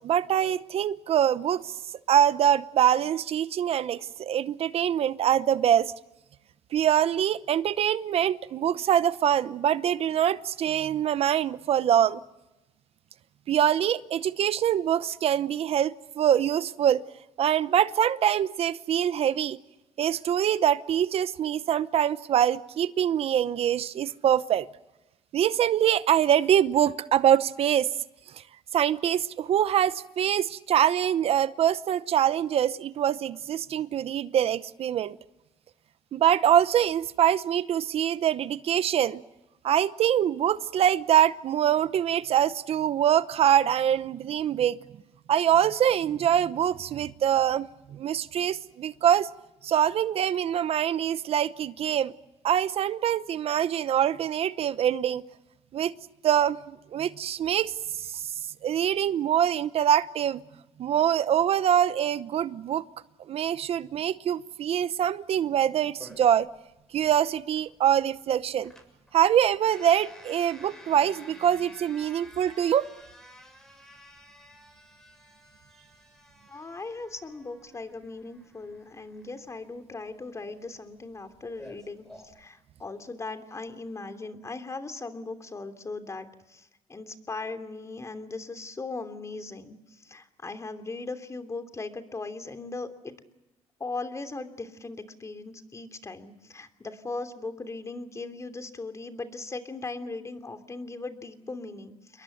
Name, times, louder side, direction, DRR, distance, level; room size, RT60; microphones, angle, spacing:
voice 1, 0.0-1.8 2.1-5.9 6.7-12.2 13.5-17.0 17.4-19.6 20.0-24.7 25.3-27.9 28.3-28.4 28.7-35.2 36.1-39.2 39.6-44.8 45.3-49.3 49.6-52.1 52.4-55.2 55.7-55.9 56.2-58.3 58.6-60.4 60.8-62.8 63.3-66.5 66.9-68.7 69.1-72.9, right 10 dB, 60° right, 15 dB, 0.8 m, -24 dB
sound 1, 66.0-82.2, equal, 5° left, 7.1 m, -52 dB
voice 2, 76.5-82.0 82.3-93.2 93.8-102.2, left 3 dB, 25° left, 8 dB, 3.0 m, -38 dB
28.5 x 22.5 x 7.9 m, 0.97 s
cardioid pair, 95°, 11 cm